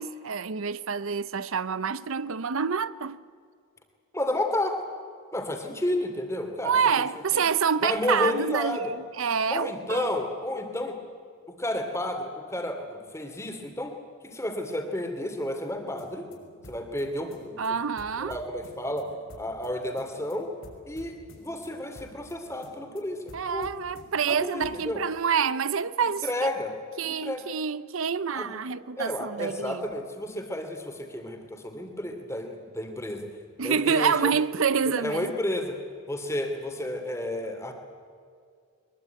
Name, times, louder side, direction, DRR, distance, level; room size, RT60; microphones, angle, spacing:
voice 1, 0.0-3.2 6.6-10.1 17.6-18.4 23.3-26.3 27.0-29.8 33.6-35.3, right 6 dB, 70° right, 0.6 m, -27 dB
voice 2, 4.1-4.8 5.3-6.7 7.3-7.4 7.8-8.9 9.5-11.0 11.5-14.0 14.2-16.3 16.7-17.8 18.2-19.1 19.4-20.5 20.9-21.2 21.4-23.7 24.3-25.0 26.0-26.7 27.0-27.4 28.3-28.6 29.0-33.3 33.6-34.3 34.9-35.8 36.1-37.7, left 1 dB, 15° left, 2.8 m, -31 dB
sound 1, 15.8-24.9, equal, 75° left, 6.1 m, -51 dB
23.0 x 22.0 x 9.2 m
head